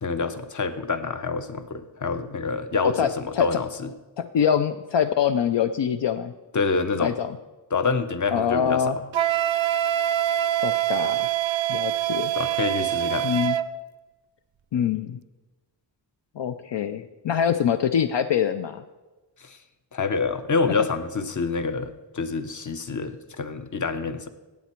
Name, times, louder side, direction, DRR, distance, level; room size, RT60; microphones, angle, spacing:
voice 1, 0.0-3.9 6.5-7.2 7.7-9.1 12.3-13.3 19.4-19.6 19.9-24.3, left 4 dB, 40° left, 10 dB, 0.8 m, -27 dB
voice 2, 2.8-3.5 4.2-6.3 7.0-7.3 8.3-9.0 10.6-11.3 11.7-12.3 13.2-13.6 14.7-15.2 16.4-18.8, left 8 dB, 70° left, 9 dB, 0.5 m, -24 dB
Wind instrument woodwind instrument, 9.1-13.7, right 12 dB, 85° right, 0.5 m, -24 dB
17.0 x 8.3 x 4.4 m, 1.2 s
wide cardioid pair, 90°, 45 cm